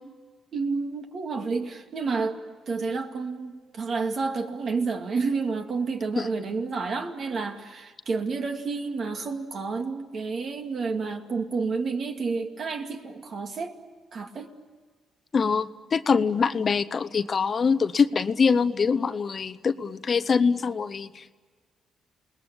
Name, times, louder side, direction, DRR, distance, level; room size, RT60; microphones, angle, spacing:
voice 1, 0.5-2.4 2.7-13.7 14.1-14.5, right 4 dB, 55° right, 5 dB, 2.3 m, -30 dB
voice 2, 15.3-21.3, left 5 dB, 40° left, 13 dB, 0.8 m, -24 dB
28.5 x 20.0 x 8.9 m, 1.5 s
cardioid pair, 90°, 0 cm